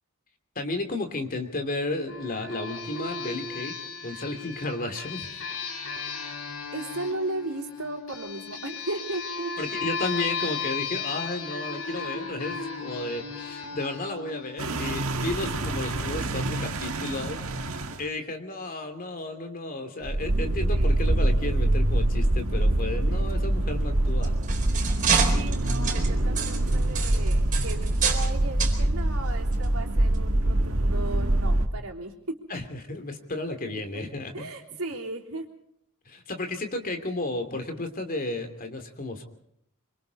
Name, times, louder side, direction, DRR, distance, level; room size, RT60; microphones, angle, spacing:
voice 1, 0.5-3.7 4.0-5.3 9.6-24.4 32.5-34.5 36.0-39.3, left 2 dB, 40° left, 6 dB, 2.9 m, -33 dB
sound 1, 2.1-15.3, left 5 dB, 70° left, 4.7 m, -35 dB
voice 2, 6.7-9.5 20.7-21.1 23.1-23.2 24.9-25.0 25.3-32.4 34.3-35.5, right 2 dB, 85° right, 0 dB, 3.6 m, -36 dB
sound 2, 14.6-18.0 20.0-31.7, right 1 dB, 70° right, 1.7 m, -25 dB
sound 3, 24.1-28.3 28.6-28.8 29.5-29.6 30.1-30.2, right 6 dB, 35° right, 4.3 m, -28 dB
26.0 x 25.5 x 4.1 m, 0.70 s
head